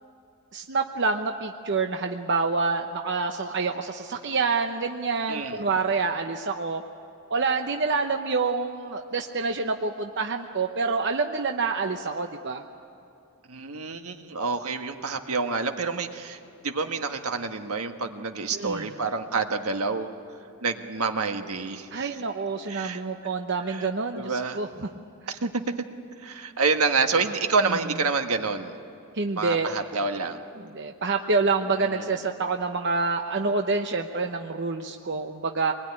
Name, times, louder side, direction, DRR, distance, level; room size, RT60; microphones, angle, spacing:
voice 1, 0.5-6.8 7.3-12.6 18.5-18.9 21.9-24.9 27.7-27.8 29.1-29.8 30.7-35.7, right 4 dB, 50° right, 4 dB, 0.9 m, -27 dB
voice 2, 5.3-5.6 13.5-16.4 16.6-20.1 20.6-22.1 22.7-23.3 23.7-23.9 24.1-24.6 25.3-25.6 26.2-28.8 29.3-30.4 31.8-32.1, right 4 dB, 75° right, 6 dB, 1.5 m, -28 dB
25.5 x 20.5 x 9.8 m, 2.6 s
head